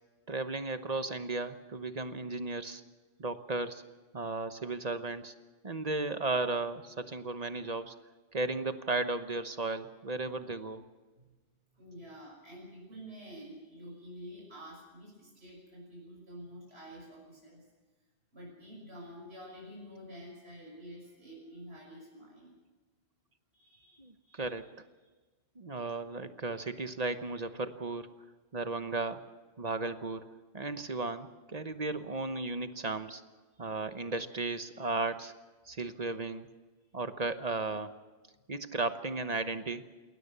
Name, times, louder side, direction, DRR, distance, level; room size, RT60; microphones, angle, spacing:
voice 1, 0.3-2.8 3.2-3.8 4.1-5.3 5.6-7.9 8.3-10.8 24.0-24.7 25.6-28.1 28.5-29.2 29.6-30.2 30.5-33.2 33.6-35.3 35.7-36.5 36.9-37.9 38.5-39.8, right 3 dB, 40° right, 10 dB, 1.1 m, -35 dB
voice 2, 11.7-17.7 18.3-22.5 23.5-24.6 33.5-33.9, equal, 70° right, -3 dB, 6.6 m, -49 dB
20.5 x 19.0 x 6.8 m, 1.3 s
omnidirectional pair, 1.1 m